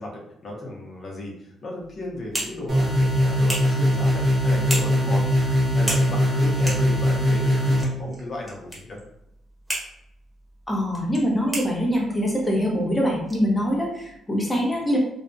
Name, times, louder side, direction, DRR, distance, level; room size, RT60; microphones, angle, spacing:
voice 1, 0.0-5.2 5.7-9.0, left 1 dB, 45° left, -1 dB, 0.7 m, -35 dB
sound 1, 1.8-14.2, right 1 dB, 10° right, 1.0 m, -37 dB
sound 2, 2.7-7.8, equal, 45° right, 1.0 m, -21 dB
voice 2, 10.7-15.0, equal, 15° left, -1 dB, 0.8 m, -24 dB
2.4 x 2.1 x 2.5 m, 0.81 s
cardioid pair, 90°, 0 cm